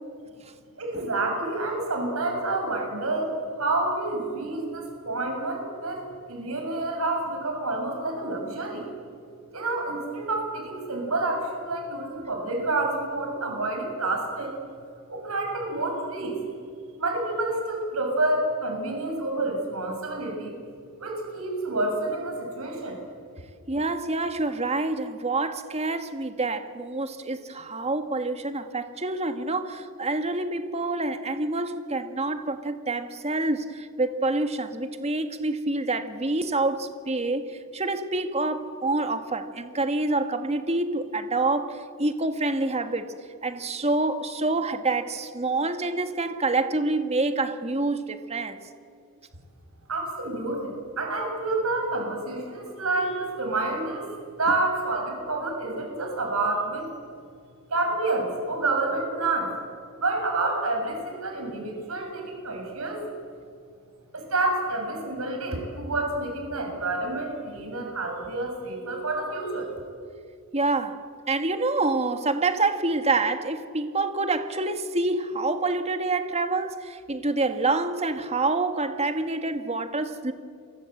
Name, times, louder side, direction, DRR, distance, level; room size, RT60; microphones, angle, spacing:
voice 1, 0.8-6.0 6.3-8.9 9.5-14.5 15.1-16.4 17.0-20.5 21.0-23.0 49.9-54.1 54.4-56.9 57.7-59.5 60.0-63.0 64.1-69.7, right 2 dB, 75° right, 6.5 m, -28 dB
voice 2, 23.7-43.1 43.4-48.6 70.5-71.0 71.3-80.3, right 2 dB, 30° right, 1.7 m, -27 dB
29.0 x 24.0 x 7.9 m
head